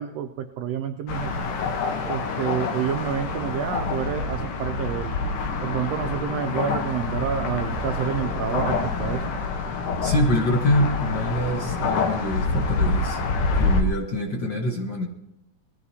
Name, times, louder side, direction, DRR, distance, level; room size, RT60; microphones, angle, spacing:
voice 1, 0.0-1.4 2.1-5.2 5.6-9.3, right 9 dB, 90° right, 7 dB, 1.4 m, -29 dB
sound 1, 1.1-13.8, left 3 dB, 75° left, 2.7 m, -27 dB
voice 2, 10.0-13.2 13.6-15.1, left 1 dB, 50° left, 2 dB, 1.6 m, -25 dB
21.0 x 15.0 x 2.9 m, 0.87 s
omnidirectional pair, 3.7 m